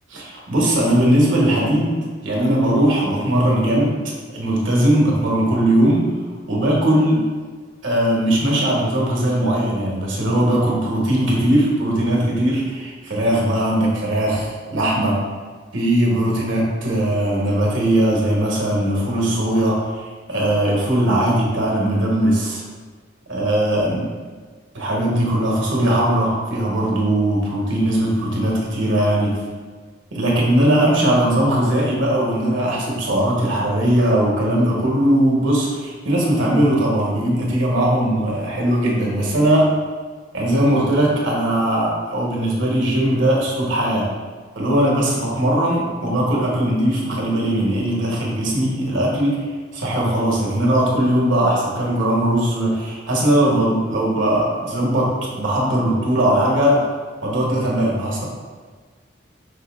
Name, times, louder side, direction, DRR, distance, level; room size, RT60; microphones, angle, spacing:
voice 1, 0.1-4.0 4.3-6.1 6.5-7.2 7.8-15.2 15.7-20.0 20.3-22.6 23.3-24.1 24.7-29.4 30.1-39.7 40.3-44.1 44.5-49.4 49.7-56.8 57.2-58.2, right 1 dB, 90° right, -3 dB, 1.1 m, -19 dB
5.5 x 2.1 x 3.5 m, 1.5 s
head